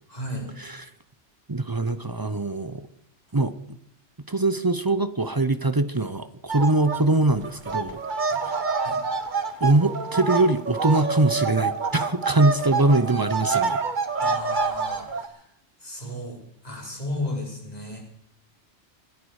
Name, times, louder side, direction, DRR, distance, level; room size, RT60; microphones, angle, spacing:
voice 1, 0.1-0.5 8.3-8.4 8.8-9.0 14.2-15.5 15.8-18.0, left 1 dB, 35° left, -2 dB, 5.1 m, -34 dB
voice 2, 1.5-2.9 3.3-3.5 4.3-8.0 8.5-8.6 9.6-13.8, right 2 dB, 25° right, 12 dB, 0.6 m, -22 dB
sound 1, 6.5-7.0 7.3-15.3, right 4 dB, 45° right, 1.3 m, -27 dB
25.5 x 11.5 x 4.9 m, 0.71 s
omnidirectional pair, 1.2 m